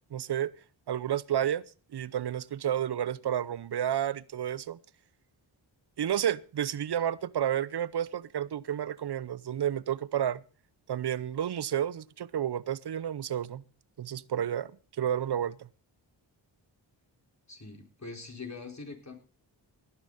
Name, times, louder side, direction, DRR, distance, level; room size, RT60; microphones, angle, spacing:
voice 1, 0.1-0.5 0.9-1.6 1.9-4.8 6.0-10.4 10.9-13.6 14.0-15.7, right 10 dB, 60° right, 0.8 m, -31 dB
voice 2, 17.5-19.1, left 4 dB, 35° left, 4.4 m, -43 dB
18.0 x 10.0 x 4.1 m
cardioid pair, 55°, 46 cm